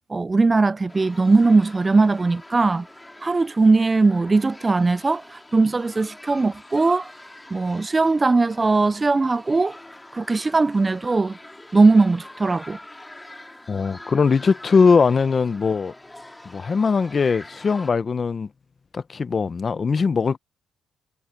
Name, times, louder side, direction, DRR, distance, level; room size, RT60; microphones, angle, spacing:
voice 1, 0.1-2.9 3.2-7.1 7.5-9.8 10.1-11.4 11.7-12.8, right 3 dB, 25° right, 0.3 m, -19 dB
sound 1, 0.9-17.9, left 1 dB, 10° left, 2.8 m, -44 dB
voice 2, 13.7-15.9 16.4-18.5 18.9-20.4, left 5 dB, 40° left, 0.9 m, -20 dB
cardioid pair, 90°, 0 cm